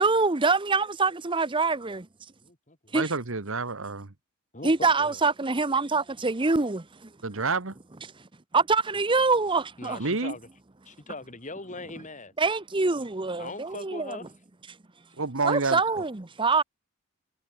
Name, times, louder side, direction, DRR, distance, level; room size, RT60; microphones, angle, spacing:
voice 1, 0.0-2.1 2.9-3.1 4.6-7.1 8.5-10.0 12.4-14.2 15.4-16.6, right 4 dB, 20° right, 0.8 m, -25 dB
voice 2, 2.4-3.0 4.5-5.2 9.8-10.5 10.9-12.3 13.4-14.3, left 2 dB, 35° left, 3.9 m, -40 dB
voice 3, 2.9-4.1 7.2-7.7 10.0-10.3 15.2-16.0, right 3 dB, 60° right, 1.4 m, -29 dB
head